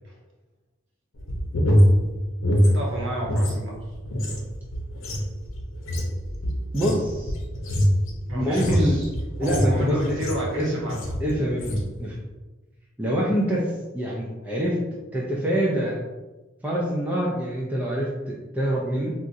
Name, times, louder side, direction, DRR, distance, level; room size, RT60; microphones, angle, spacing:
sound 1, 1.1-3.5 3.8-10.5 10.9-11.2 11.5-11.9, equal, 70° left, 0.7 m, -23 dB
voice 1, 2.6-3.8 8.3-9.1 9.4-11.1, right 1 dB, 65° right, -3 dB, 1.0 m, -30 dB
voice 2, 6.7-7.3 8.4-9.0 9.4-10.2 10.6-10.7 11.2-12.2 13.0-14.8 15.1-16.0 16.6-19.1, equal, 10° right, -5 dB, 0.4 m, -25 dB
4.1 x 2.4 x 2.6 m, 1.2 s
head